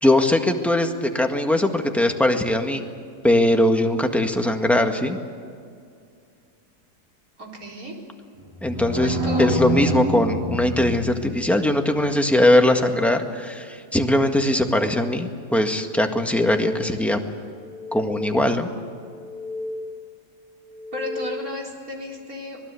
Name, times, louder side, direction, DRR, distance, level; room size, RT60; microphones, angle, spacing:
voice 1, 0.0-2.8 3.2-5.2 8.6-17.2 17.9-18.7, left 1 dB, ahead, 4 dB, 1.5 m, -20 dB
voice 2, 7.4-7.9 9.0-9.9 20.9-22.6, left 1 dB, 60° right, -1 dB, 4.6 m, -32 dB
sound 1, 8.4-11.6, right 1 dB, 15° right, 2.3 m, -26 dB
sound 2, 16.1-17.2 17.6-18.7 19.1-20.2 20.6-21.8, left 2 dB, 75° left, 2.3 m, -35 dB
26.0 x 20.0 x 8.4 m, 2.3 s
omnidirectional pair, 1.7 m